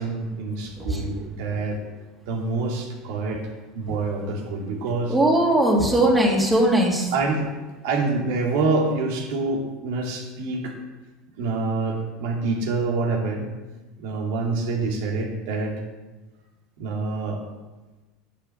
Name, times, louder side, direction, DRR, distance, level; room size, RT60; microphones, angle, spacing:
voice 1, 0.0-1.8 2.3-3.4 3.7-5.2 7.1-7.5 7.8-10.7 11.4-13.5 14.0-15.8 16.8-17.4, right 3 dB, 75° right, 0 dB, 2.6 m, -26 dB
voice 2, 5.1-7.1, right 1 dB, 10° right, -1 dB, 2.5 m, -19 dB
10.5 x 5.6 x 7.7 m, 1.2 s
supercardioid pair, 105°, 0 cm